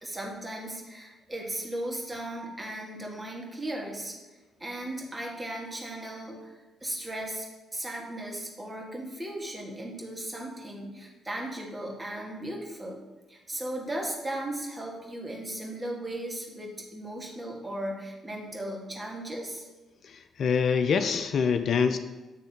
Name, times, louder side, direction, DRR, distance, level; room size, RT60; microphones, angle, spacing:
voice 1, 0.0-4.2 4.6-13.0 13.3-19.7, right 1 dB, 25° right, -1 dB, 1.8 m, -36 dB
voice 2, 20.0-22.0, left 6 dB, 60° left, 9 dB, 0.4 m, -25 dB
8.4 x 3.2 x 4.5 m, 1.1 s
hypercardioid pair, 45°, 0 cm